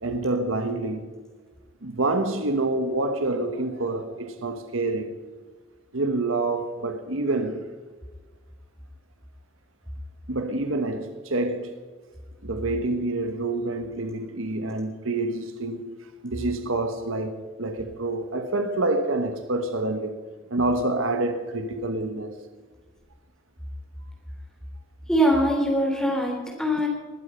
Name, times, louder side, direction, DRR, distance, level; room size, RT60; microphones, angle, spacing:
voice 1, 0.0-1.1 1.8-5.1 5.9-7.6 10.3-11.7 12.4-16.0 16.2-20.2 20.5-22.3, right 2 dB, 80° right, 1.4 m, -27 dB
voice 2, 25.1-26.9, equal, 5° left, 3.6 m, -22 dB
21.0 x 8.5 x 5.6 m
head